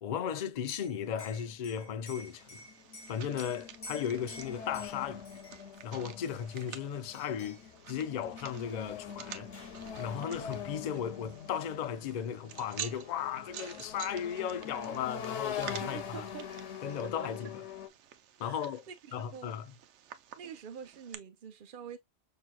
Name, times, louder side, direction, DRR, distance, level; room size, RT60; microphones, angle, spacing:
voice 1, 0.0-2.6 3.1-5.2 5.8-9.5 10.0-16.2 16.8-17.5 18.4-18.8 19.1-19.7, left 8 dB, 50° left, 0.5 m, -36 dB
Liquid, 0.5-5.8 6.3-6.8 7.1-7.7 8.9-9.0 9.2-9.9, left 1 dB, 30° left, 1.3 m, -51 dB
sound 1, 1.5-1.6 1.8-17.9, left 8 dB, 85° left, 1.0 m, -44 dB
sound 2, 2.1-21.1, right 10 dB, 90° right, 0.9 m, -50 dB
voice 2, 15.8-16.5 18.4-19.5 20.4-22.0, right 8 dB, 55° right, 0.8 m, -46 dB
6.0 x 2.9 x 2.2 m
omnidirectional pair, 1.1 m